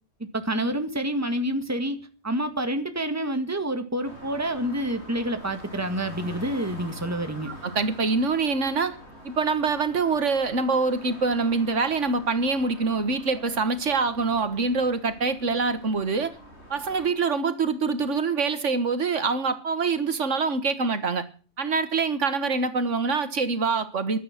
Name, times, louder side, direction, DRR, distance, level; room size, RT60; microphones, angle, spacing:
voice 1, 0.3-7.5, right 1 dB, 15° right, 1.7 m, -28 dB
sound 1, 4.0-17.1, left 1 dB, 65° left, 7.1 m, -45 dB
voice 2, 7.5-9.0 9.2-16.3 16.7-21.3 21.6-24.2, right 4 dB, 80° right, 1.8 m, -25 dB
16.0 x 12.0 x 5.9 m
omnidirectional pair, 1.2 m